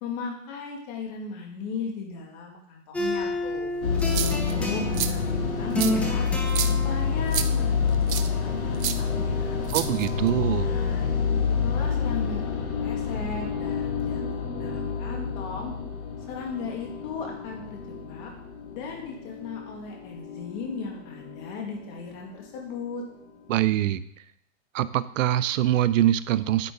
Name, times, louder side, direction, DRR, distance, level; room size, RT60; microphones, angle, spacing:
voice 1, 0.0-3.7 4.1-6.3 6.6-7.7 8.1-9.6 10.5-11.1 11.6-14.2 14.5-15.7 16.3-18.3 18.7-23.0, left 5 dB, 35° left, 0 dB, 2.2 m, -37 dB
sound 1, 2.9-9.7, equal, 5° left, 0.6 m, -32 dB
sound 2, 3.8-22.2, left 6 dB, 90° left, 2.4 m, -28 dB
sound 3, 4.0-4.5 4.9-5.1 5.8-5.9 6.5-6.7 7.3-7.5 8.1-8.3 8.8-9.0 9.7-10.3, right 11 dB, 85° right, 0.9 m, -29 dB
voice 2, 9.7-10.7 23.5-24.0 24.7-26.7, right 12 dB, 70° right, 16 dB, 0.6 m, -23 dB
9.6 x 9.3 x 3.9 m, 0.73 s
supercardioid pair, 165°, 41 cm